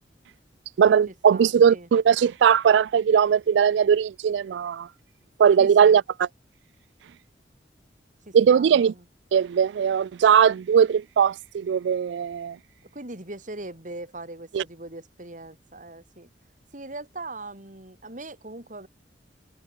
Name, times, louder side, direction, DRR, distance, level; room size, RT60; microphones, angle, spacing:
voice 1, 0.8-4.9 5.4-6.3 8.3-8.9 9.3-12.6 14.5-14.6, right 7 dB, 85° right, 0.3 m, -19 dB
voice 2, 1.3-1.9 5.6-6.0 8.3-9.1 12.9-16.3 16.7-18.9, right 2 dB, 45° right, 3.7 m, -40 dB
head